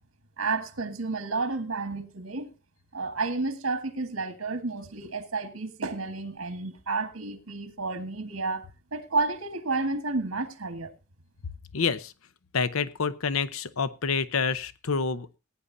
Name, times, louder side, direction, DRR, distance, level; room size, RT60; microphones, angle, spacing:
voice 1, 0.4-2.5 2.9-8.6 8.9-10.9, right 3 dB, 85° right, 1.5 m, -31 dB
voice 2, 11.7-12.1 12.5-15.4, left 5 dB, 90° left, 0.8 m, -28 dB
19.5 x 9.9 x 2.7 m
head